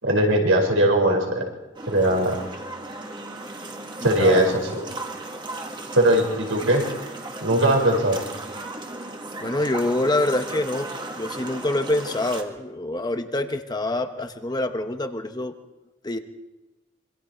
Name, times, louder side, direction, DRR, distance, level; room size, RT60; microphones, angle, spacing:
voice 1, 0.0-1.4 1.9-2.4 4.0-4.6 6.0-6.8 7.4-8.2, right 1 dB, 85° right, 1 dB, 5.4 m, -19 dB
sound 1, 1.7-12.4, right 2 dB, 25° right, 1.9 m, -36 dB
voice 2, 4.0-4.5 9.4-10.9 11.1-15.5 16.0-16.2, left 2 dB, 20° left, 7 dB, 1.0 m, -26 dB
26.5 x 24.0 x 4.5 m, 1.1 s
head